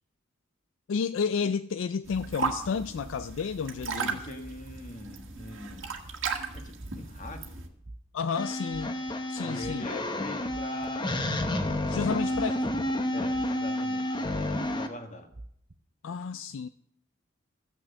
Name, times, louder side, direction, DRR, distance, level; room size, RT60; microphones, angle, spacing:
voice 1, 0.9-4.2 8.1-8.9 9.3-9.8 11.9-12.6 16.0-16.7, left 6 dB, 70° left, 0.4 m, -31 dB
sound 1, 2.0-7.7, right 5 dB, 80° right, 1.6 m, -36 dB
voice 2, 3.9-6.0 6.5-7.7 9.4-11.3 12.1-12.4 13.1-15.3, left 2 dB, 40° left, 1.6 m, -43 dB
sound 2, 6.0-6.2 6.8-7.2 7.8-8.3 8.7-9.1 9.6-10.0 10.4-10.9 11.3-12.0 12.3-12.7 13.3-13.7 14.3-14.7 15.3-15.8, right 2 dB, 35° right, 0.7 m, -46 dB
sound 3, 8.4-14.9, left 1 dB, 25° left, 0.9 m, -30 dB
14.5 x 6.2 x 7.9 m
head